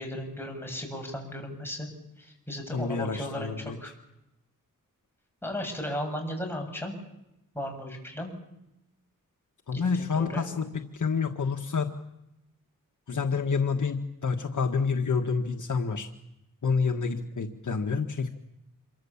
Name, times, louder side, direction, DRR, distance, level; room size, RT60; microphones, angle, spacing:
voice 1, 0.0-1.9 2.2-3.9 5.4-7.0 7.5-8.3 9.9-10.5, left 1 dB, 5° left, 1 dB, 7.5 m, -35 dB
voice 2, 2.7-3.8 9.7-10.6 10.9-11.9 13.1-16.1 16.6-18.3, left 5 dB, 60° left, 4 dB, 1.6 m, -28 dB
27.0 x 24.0 x 7.3 m, 0.87 s
wide cardioid pair, 100°, 34 cm